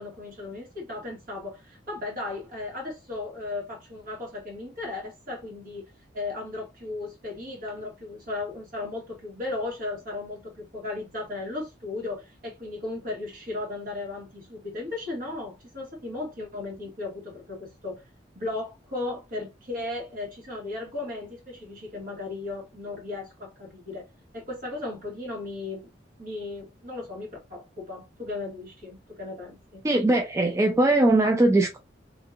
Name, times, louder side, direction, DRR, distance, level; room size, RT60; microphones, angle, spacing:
voice 1, 0.0-5.8 6.1-18.0 18.3-24.1 24.3-25.9 26.2-29.8, left 2 dB, 50° right, 1.6 m, -36 dB
voice 2, 29.8-31.8, right 2 dB, 15° right, 0.3 m, -20 dB
2.8 x 2.7 x 2.3 m
head